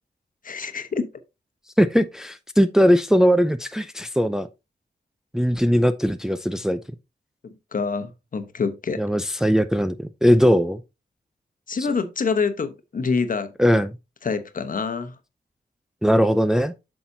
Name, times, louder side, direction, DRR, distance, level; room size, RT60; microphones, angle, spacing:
voice 1, 0.4-1.1 7.4-9.0 11.7-13.5 14.2-15.2, left 5 dB, 50° left, 1.1 m, -26 dB
voice 2, 1.8-4.5 5.3-6.8 9.0-10.8 13.6-13.9 16.0-16.7, equal, 5° right, 0.5 m, -19 dB
8.4 x 6.0 x 2.7 m
wide cardioid pair, 100°, 17 cm